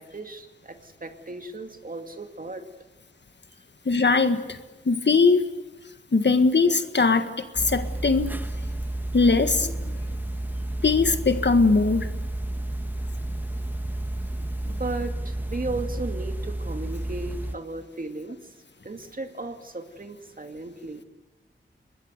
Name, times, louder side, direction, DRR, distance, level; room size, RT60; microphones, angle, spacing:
voice 1, 0.0-2.6 14.7-18.4 18.8-21.0, right 2 dB, 45° right, 6 dB, 2.4 m, -35 dB
voice 2, 3.8-4.6 4.8-5.4 6.1-8.3 9.1-9.9 10.8-12.1, left 4 dB, 60° left, 9 dB, 1.7 m, -21 dB
sound 1, 7.6-17.6, right 1 dB, 10° right, 1.4 m, -31 dB
25.0 x 21.0 x 8.2 m, 1.2 s
wide cardioid pair, 70°, 20 cm